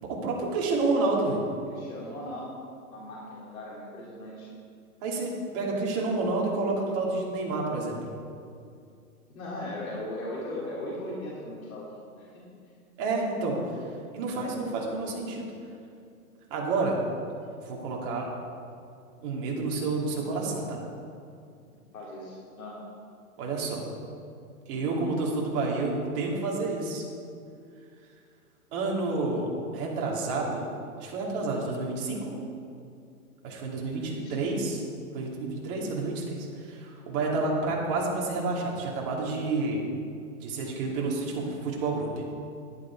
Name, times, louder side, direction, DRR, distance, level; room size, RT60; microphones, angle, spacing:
voice 1, 0.0-1.4 5.0-8.0 13.0-13.6 14.1-15.5 16.5-17.0 17.6-18.3 19.2-20.8 23.4-23.8 24.7-27.0 28.7-30.7 31.0-32.4 33.4-34.8 35.1-39.8 40.4-42.1, right 3 dB, 35° right, -2 dB, 2.8 m, -29 dB
voice 2, 1.7-2.5 2.9-4.5 9.3-12.3 21.9-22.8 33.8-34.3, left 1 dB, 65° left, -6 dB, 3.3 m, -38 dB
11.0 x 10.5 x 4.7 m, 2.4 s
hypercardioid pair, 140°, 44 cm